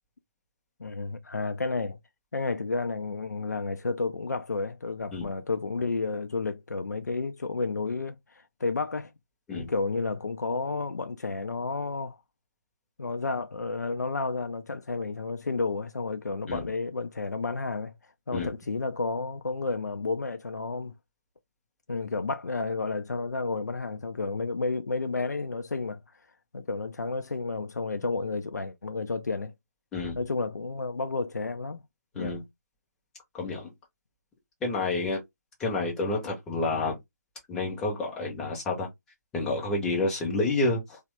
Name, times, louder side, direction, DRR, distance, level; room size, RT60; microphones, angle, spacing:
voice 1, 0.8-2.0 2.3-9.1 9.5-12.2 13.0-17.9 18.3-20.9 21.9-26.0 26.5-29.5 30.1-31.8 32.2-32.4, left 3 dB, 80° left, 0.4 m, -31 dB
voice 2, 33.3-33.7 34.6-35.2 35.6-37.0 37.5-38.9 39.3-41.0, left 2 dB, 5° left, 0.6 m, -29 dB
2.9 x 2.1 x 3.1 m
figure-of-eight pair, 150°, 9 cm